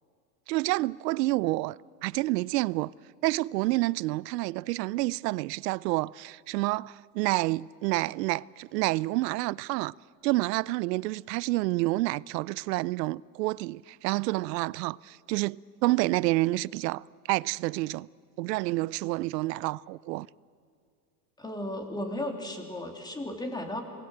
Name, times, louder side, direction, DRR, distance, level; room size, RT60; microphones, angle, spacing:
voice 1, 0.5-1.8 2.0-2.9 3.2-9.9 10.2-18.1 18.4-20.3, right 20 dB, 85° right, 0.6 m, -28 dB
voice 2, 21.4-23.8, left 1 dB, 10° left, 3.0 m, -35 dB
27.5 x 20.0 x 7.8 m
supercardioid pair, 135°, 47 cm